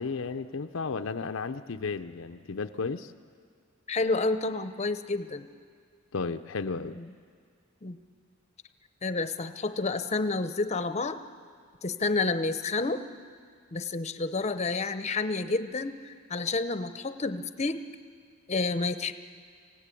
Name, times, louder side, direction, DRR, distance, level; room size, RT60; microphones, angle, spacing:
voice 1, 0.0-3.1 6.1-7.0, left 4 dB, 70° left, 8 dB, 0.6 m, -33 dB
voice 2, 3.9-5.5 6.9-7.0 7.8-8.0 9.0-11.2 11.8-13.0 13.7-17.8 18.5-19.1, left 3 dB, 35° left, 10 dB, 0.8 m, -29 dB
26.5 x 17.0 x 8.4 m, 2.1 s
head